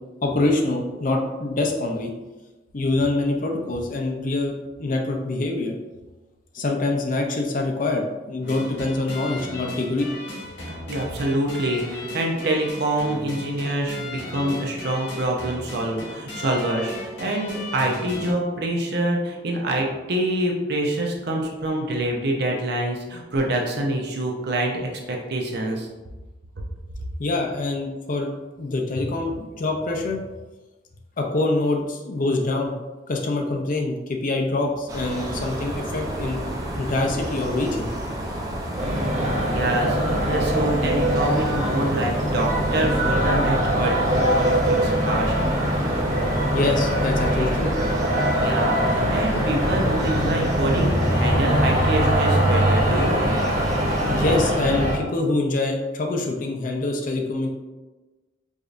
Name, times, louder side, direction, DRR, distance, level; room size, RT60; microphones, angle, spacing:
voice 1, 0.2-2.1 2.7-5.7 6.5-10.1 27.2-28.3 28.6-30.2 31.2-32.7 33.1-36.4 36.7-37.9 46.5-47.7 49.0-49.1 54.1-57.5, left 2 dB, 45° left, 1 dB, 0.5 m, -25 dB
sound 1, 8.4-18.3, left 1 dB, 75° left, 1.4 m, -36 dB
voice 2, 10.7-25.9 39.4-45.3 47.4-47.5 48.4-53.3, right 1 dB, 60° right, -1 dB, 0.7 m, -26 dB
sound 2, 34.9-54.5, right 1 dB, 20° right, 0.5 m, -30 dB
sound 3, 38.8-55.0, right 1 dB, 40° right, 1.0 m, -22 dB
4.8 x 2.7 x 2.5 m, 1.2 s
head